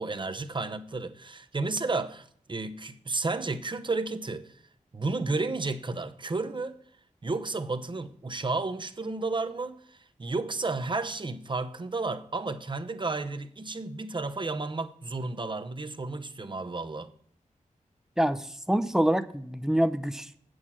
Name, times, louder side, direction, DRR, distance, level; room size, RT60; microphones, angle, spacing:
voice 1, 0.0-4.5 4.9-6.8 7.2-17.1, right 3 dB, 35° right, 0.9 m, -32 dB
voice 2, 18.2-20.4, right 1 dB, 5° right, 0.7 m, -26 dB
8.5 x 6.3 x 7.5 m
wide cardioid pair, 95°, 14 cm